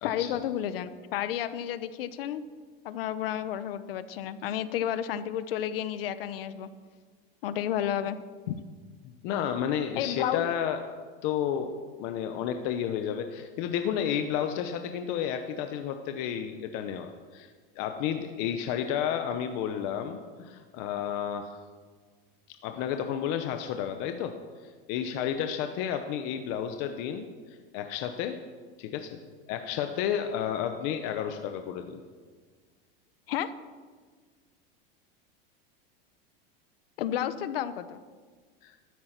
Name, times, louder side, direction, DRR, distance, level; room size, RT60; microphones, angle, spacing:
voice 1, 0.0-2.4 2.8-6.7 7.4-8.2 8.5-8.6 10.0-10.5 33.3-33.5 37.0-38.0, left 10 dB, 70° left, 13 dB, 0.9 m, -31 dB
voice 2, 9.0-10.8 11.2-11.7 12.0-17.5 17.8-21.7 22.6-24.4 24.6-28.4 28.8-29.2 29.5-32.0 38.6-38.7, left 9 dB, 35° left, 7 dB, 0.8 m, -31 dB
14.0 x 13.0 x 5.9 m, 1.5 s
supercardioid pair, 175°, 30 cm